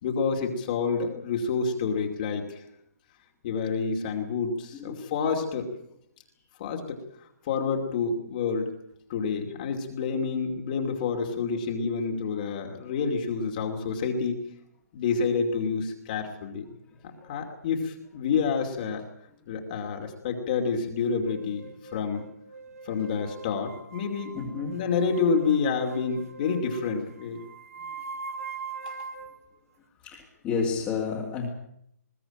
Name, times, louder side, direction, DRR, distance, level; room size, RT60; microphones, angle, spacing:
voice 1, 0.0-2.6 3.4-5.7 6.6-8.7 9.1-14.5 14.9-16.6 17.0-19.0 19.5-22.3 22.8-27.4 28.9-29.0, left 5 dB, 30° left, 3 dB, 2.6 m, -28 dB
voice 2, 4.7-5.1 16.9-17.5 24.3-24.8 30.0-31.5, left 5 dB, 15° left, -3 dB, 2.4 m, -32 dB
sound 1, 21.3-29.4, right 5 dB, 60° right, 2.0 m, -42 dB
21.0 x 16.5 x 8.9 m, 0.73 s
hypercardioid pair, 170°, 9 cm